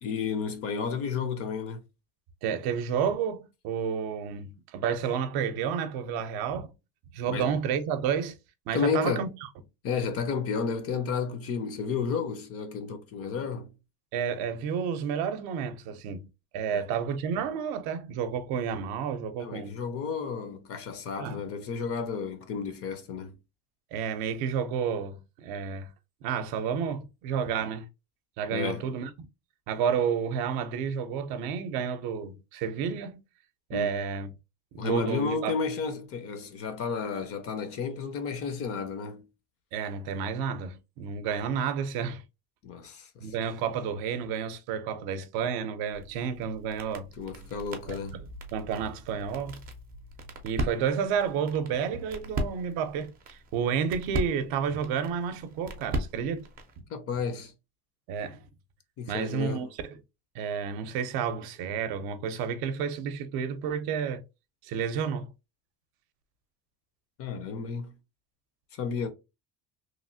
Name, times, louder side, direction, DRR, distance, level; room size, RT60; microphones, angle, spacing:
voice 1, 0.0-1.8 7.3-7.5 8.7-9.3 9.8-13.7 16.7-16.8 19.4-23.4 28.5-28.9 33.7-34.1 34.8-39.2 42.6-43.5 47.2-48.2 56.9-57.5 59.0-59.7 67.2-67.9 68.8-69.1, left 5 dB, 40° left, 0.4 m, -32 dB
voice 2, 2.4-6.7 7.1-8.4 8.7-9.3 14.1-16.2 16.5-19.8 21.2-21.4 23.9-25.9 26.2-27.9 28.4-29.3 29.7-33.2 33.7-34.3 34.7-35.6 39.7-42.2 43.2-47.1 47.9-48.0 48.5-49.6 50.4-56.5 58.1-58.4 59.1-60.0 60.3-64.2 64.6-65.3, right 7 dB, 70° right, 0.6 m, -30 dB
sound 1, 45.9-56.8, right 1 dB, 25° right, 0.4 m, -38 dB
3.0 x 2.4 x 2.6 m
cardioid pair, 170°, 39 cm